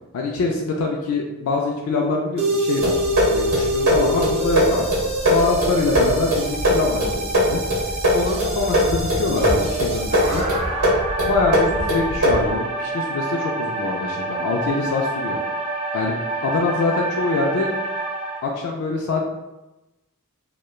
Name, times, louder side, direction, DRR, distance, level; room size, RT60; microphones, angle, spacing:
voice 1, 0.1-2.9 3.3-4.9 5.3-7.6 8.1-10.4 11.3-15.4 15.9-17.7 18.4-19.2, left 3 dB, 75° left, 0 dB, 0.3 m, -24 dB
sound 1, 2.4-18.4, right 2 dB, 25° right, 0.4 m, -26 dB
sound 2, 2.8-12.5, equal, 80° right, 1.2 m, -22 dB
2.9 x 2.1 x 2.2 m, 0.99 s
head